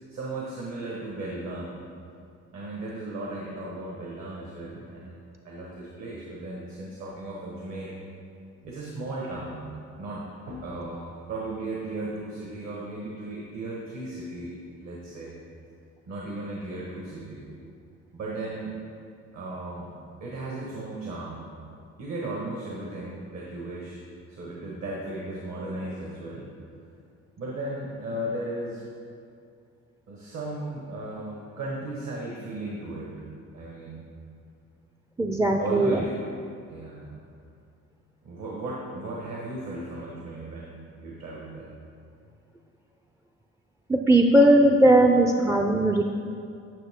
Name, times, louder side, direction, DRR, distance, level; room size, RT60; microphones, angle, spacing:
voice 1, 0.1-1.8 2.5-5.2 5.4-7.9 8.6-9.7 10.0-14.5 14.8-15.3 16.1-17.5 18.1-18.8 19.3-19.9 20.2-21.5 22.0-24.0 24.3-26.5 27.4-28.8 30.1-33.2 33.5-34.1 35.6-36.2 36.7-37.1 38.2-41.7, right 2 dB, 65° right, -4 dB, 1.4 m, -36 dB
voice 2, 35.2-36.0 43.9-46.0, right 1 dB, 10° right, 3 dB, 0.3 m, -19 dB
9.2 x 5.8 x 3.6 m, 2.4 s
cardioid pair, 90°, 30 cm